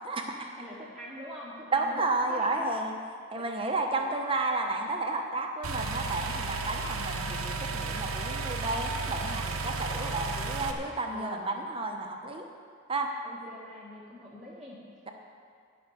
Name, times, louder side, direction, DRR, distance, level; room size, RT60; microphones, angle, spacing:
voice 1, 0.0-0.6 1.7-3.0 3.3-12.5 12.9-13.1, right 2 dB, 25° right, 3 dB, 1.0 m, -32 dB
voice 2, 0.6-2.0 2.3-2.7 3.3-3.7 11.1-11.7 13.2-14.8, equal, ahead, -10 dB, 1.7 m, -44 dB
sound 1, 5.6-10.7, right 3 dB, 85° right, 1.0 m, -33 dB
12.5 x 6.0 x 9.2 m, 2.2 s
head